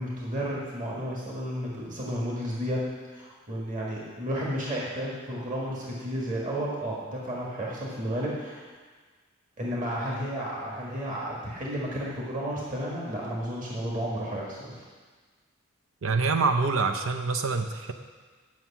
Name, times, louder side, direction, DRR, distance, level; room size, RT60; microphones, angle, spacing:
voice 1, 0.0-2.8 3.1-8.7 9.6-14.8, equal, 40° right, -4 dB, 1.7 m, -32 dB
voice 2, 16.0-17.9, right 4 dB, 80° right, 5 dB, 0.6 m, -25 dB
9.4 x 5.7 x 7.2 m, 1.4 s
head